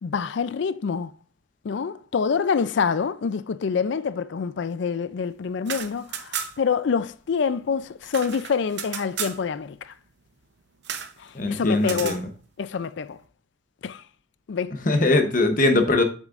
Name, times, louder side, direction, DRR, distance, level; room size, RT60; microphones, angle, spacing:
voice 1, 0.0-1.1 1.6-9.9 11.2-12.2 12.6-13.2 13.8-14.0 14.5-14.8, left 6 dB, 65° left, 0.4 m, -26 dB
sound 1, 5.5-6.8 7.0-7.1 7.4-9.4 10.8-11.2 11.8-12.2, right 8 dB, 60° right, 0.7 m, -33 dB
voice 2, 11.3-12.2 14.9-16.0, left 2 dB, 45° left, 0.9 m, -21 dB
7.4 x 6.4 x 2.5 m
head